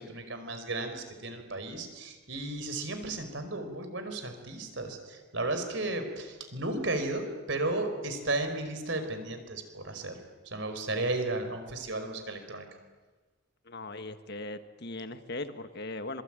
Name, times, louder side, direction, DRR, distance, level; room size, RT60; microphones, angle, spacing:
voice 1, 0.0-10.1 10.4-12.7, right 2 dB, 65° right, 7 dB, 4.9 m, -34 dB
voice 2, 13.7-16.2, left 2 dB, 55° left, 9 dB, 1.7 m, -39 dB
26.0 x 24.0 x 9.0 m, 1.3 s
head